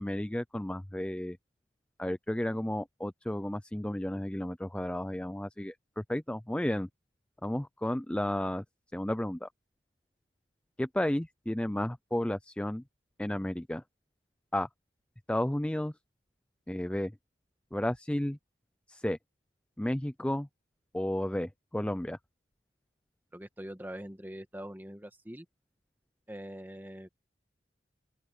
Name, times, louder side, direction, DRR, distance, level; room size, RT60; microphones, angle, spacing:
voice 1, 0.0-1.4 2.0-6.9 7.4-8.6 8.9-9.5 10.8-12.8 13.2-13.8 14.5-14.7 15.3-15.9 16.7-17.1 17.7-18.4 18.9-19.2 19.8-20.5 20.9-22.2, left 1 dB, 5° left, 0.4 m, -32 dB
voice 2, 23.3-25.4 26.3-27.1, equal, 10° right, 1.5 m, -43 dB
open air
head